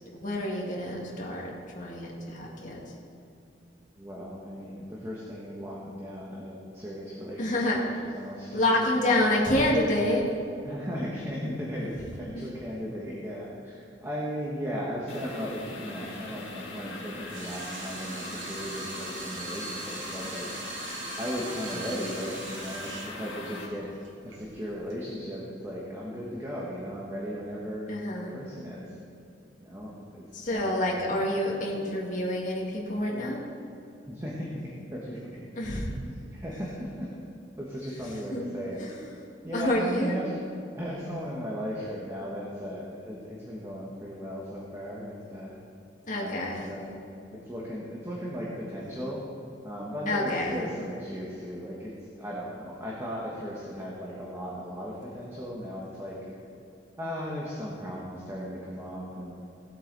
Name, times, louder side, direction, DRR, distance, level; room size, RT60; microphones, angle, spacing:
voice 1, 0.1-1.5 1.8-2.8 7.4-7.8 8.5-10.2 12.3-12.4 27.9-28.3 30.3-33.4 35.6-35.9 38.3-38.4 38.8-39.0 39.5-40.2 46.1-46.7 50.1-50.6, left 1 dB, 45° left, -3 dB, 2.0 m, -27 dB
voice 2, 4.0-8.6 9.0-9.3 10.6-20.5 21.2-23.9 24.2-27.9 28.2-28.9 29.6-31.1 34.1-35.3 35.9-37.1 37.6-38.8 39.4-40.4 40.8-45.6 46.1-47.0 47.3-49.2 49.6-51.9 52.2-56.2 57.0-59.3, equal, 15° right, -5 dB, 1.4 m, -36 dB
sound 1, 15.1-23.7, left 2 dB, 85° left, 2.2 m, -40 dB
Water tap faucet / Sink (filling or washing), 17.1-25.1, right 4 dB, 85° right, 1.1 m, -41 dB
17.0 x 8.2 x 4.1 m, 2.6 s
head